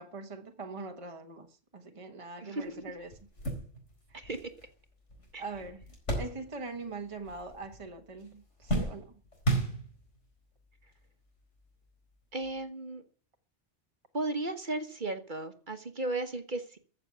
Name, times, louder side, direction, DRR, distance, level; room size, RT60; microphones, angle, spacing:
voice 1, 0.0-3.2 5.4-5.8 6.1-9.2, right 3 dB, 30° right, 1.3 m, -42 dB
sound 1, 2.6-2.7 3.1-6.9 7.2-7.9 8.2-10.2 11.0-11.1 12.4-12.6, right 2 dB, 80° left, 4.9 m, -35 dB
voice 2, 4.1-4.5 5.3-5.4 12.3-13.0 14.1-16.8, right 2 dB, 45° right, 1.5 m, -35 dB
15.0 x 6.7 x 9.3 m
omnidirectional pair, 1.2 m